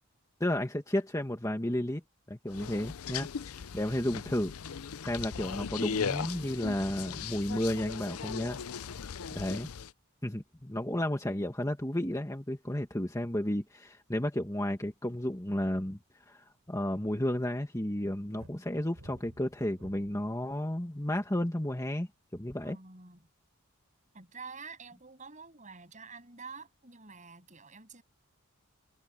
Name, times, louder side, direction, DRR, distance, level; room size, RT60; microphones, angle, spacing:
voice 1, 0.4-2.0 2.3-3.3 3.5-4.5 5.0-8.6 9.4-9.7 10.2-16.0 16.3-22.1 22.3-22.8, left 1 dB, 15° left, 1.7 m, -32 dB
sound 1, 2.5-9.9, left 6 dB, 85° left, 0.6 m, -38 dB
sound 2, 18.4-20.3 21.0-21.4, equal, 80° right, 7.7 m, -52 dB
voice 2, 22.6-23.3 24.1-28.0, right 4 dB, 35° right, 7.6 m, -48 dB
head